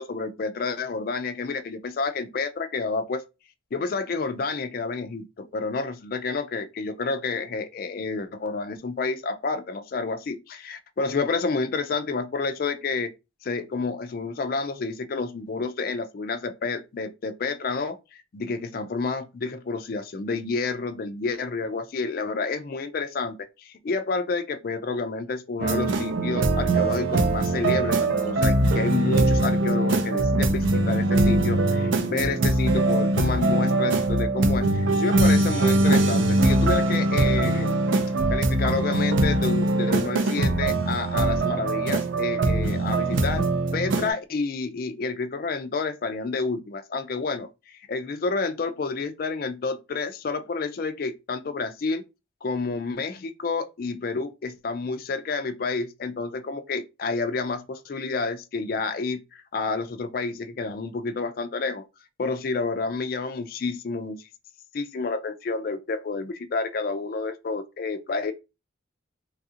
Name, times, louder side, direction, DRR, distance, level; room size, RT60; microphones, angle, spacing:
voice 1, 0.0-3.2 3.7-13.1 13.4-37.8 38.3-43.5 43.7-52.0 52.4-59.2 59.5-61.8 62.2-64.3 64.7-68.3, left 4 dB, 50° left, 0.3 m, -29 dB
sound 1, 25.6-44.1, right 2 dB, 75° right, 0.5 m, -22 dB
3.3 x 2.4 x 2.7 m
head